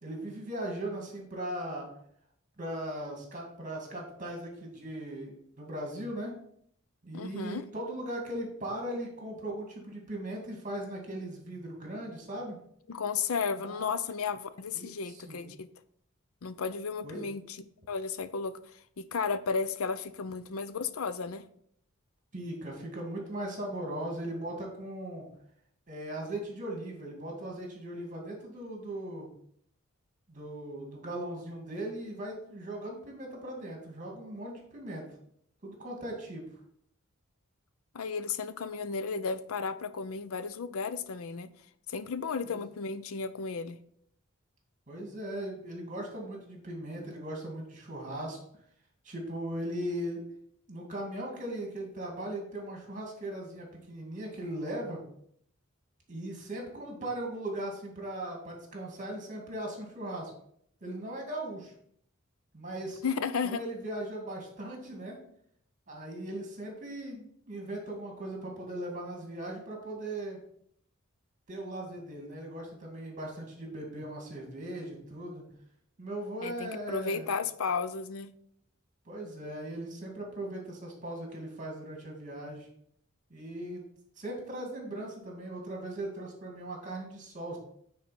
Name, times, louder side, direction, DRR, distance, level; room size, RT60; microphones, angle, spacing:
voice 1, 0.0-1.9 2.6-6.3 7.0-12.6 13.6-13.9 14.7-15.4 17.0-17.3 22.3-25.3 25.9-29.3 30.3-35.1 35.6-36.5 42.5-42.6 44.9-48.4 49.0-50.3 50.7-55.0 56.1-60.3 60.8-61.7 62.5-63.0 63.4-65.2 65.9-70.4 71.5-75.5 76.0-77.3 79.1-82.7 83.3-83.9 84.2-87.6, right 1 dB, 40° right, 0 dB, 2.2 m, -38 dB
voice 2, 7.1-7.7 12.9-15.7 16.4-17.6 17.9-18.5 19.0-21.4 37.9-41.5 41.9-43.8 63.0-63.6 76.4-78.3, left 5 dB, 85° left, 13 dB, 0.6 m, -33 dB
9.4 x 4.2 x 4.3 m, 0.68 s
head